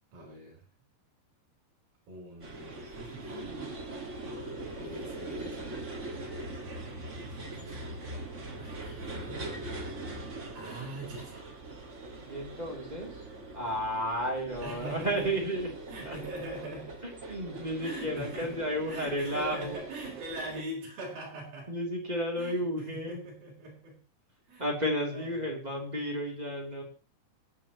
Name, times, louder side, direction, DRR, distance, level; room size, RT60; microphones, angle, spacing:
voice 1, 0.1-0.7 2.1-3.8 4.6-5.9 7.2-8.0 8.5-9.5 10.5-11.5 14.6-15.3 15.9-16.9 17.8-21.7 22.4-24.0 24.5-24.7 25.1-25.5, right 1 dB, 60° right, -2 dB, 6.0 m, -42 dB
sound 1, 2.4-20.6, right 2 dB, 35° right, 1.1 m, -42 dB
voice 2, 12.3-13.2 13.5-15.7 16.0-16.2 17.0-19.8 21.7-23.2 24.6-26.8, equal, 10° right, 0 dB, 2.5 m, -32 dB
26.0 x 9.0 x 3.0 m, 0.36 s
omnidirectional pair, 4.6 m